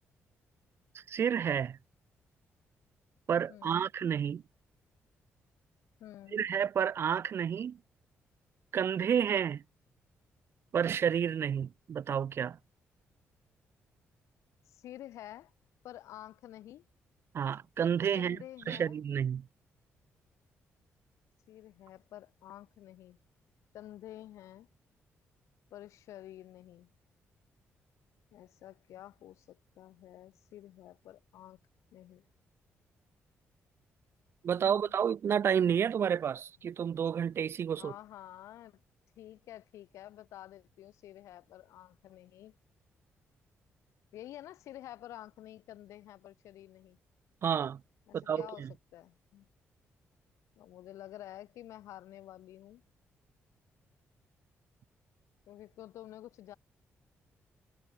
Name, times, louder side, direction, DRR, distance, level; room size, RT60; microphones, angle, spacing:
voice 1, 0.9-1.8 3.3-4.4 6.3-7.8 8.7-9.6 10.7-12.6 17.3-18.4 18.7-19.5 34.4-37.9 47.4-47.8 48.1-48.7, right 8 dB, 55° right, 1.0 m, -30 dB
voice 2, 3.5-3.9 6.0-6.5 14.7-15.5 15.8-16.8 18.2-19.0 21.5-23.2 23.7-24.7 25.7-26.9 28.3-31.6 31.9-32.2 34.5-34.9 37.7-38.8 39.2-42.5 44.1-47.0 48.1-49.5 50.6-52.8 55.5-56.6, left 13 dB, 90° left, 7.2 m, -50 dB
cardioid pair, 95°, 5 cm